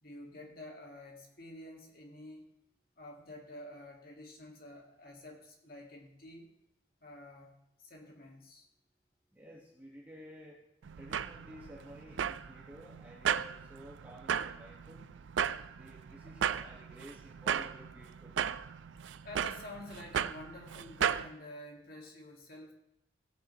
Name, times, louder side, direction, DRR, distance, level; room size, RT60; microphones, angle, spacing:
voice 1, 0.0-2.5 3.0-6.5 7.0-7.5 7.8-8.7 19.2-22.7, left 1 dB, 55° left, 0 dB, 2.0 m, -49 dB
voice 2, 9.3-10.6 11.0-15.1 15.7-18.4, equal, 10° right, -4 dB, 1.5 m, -53 dB
sound 1, 10.8-21.3, right 8 dB, 85° right, 0.4 m, -36 dB
17.0 x 9.9 x 3.1 m, 0.83 s
head